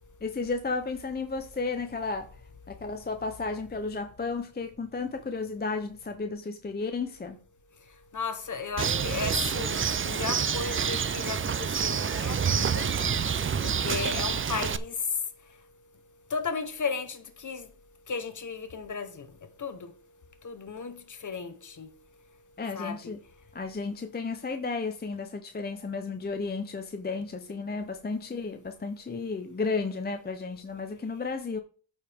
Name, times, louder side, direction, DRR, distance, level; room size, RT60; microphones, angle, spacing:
voice 1, 0.2-2.3 2.7-7.4 22.6-23.2 23.5-31.6, left 4 dB, 20° left, 0.6 m, -33 dB
voice 2, 8.1-12.9 13.6-14.9 16.3-17.7 18.1-19.3 19.6-19.9 20.4-21.0 21.2-21.9 22.7-23.1, left 5 dB, 40° left, 1.0 m, -35 dB
Bird, 8.8-14.8, right 7 dB, 30° right, 0.4 m, -28 dB
13.5 x 4.8 x 3.5 m
wide cardioid pair, 145°, 47 cm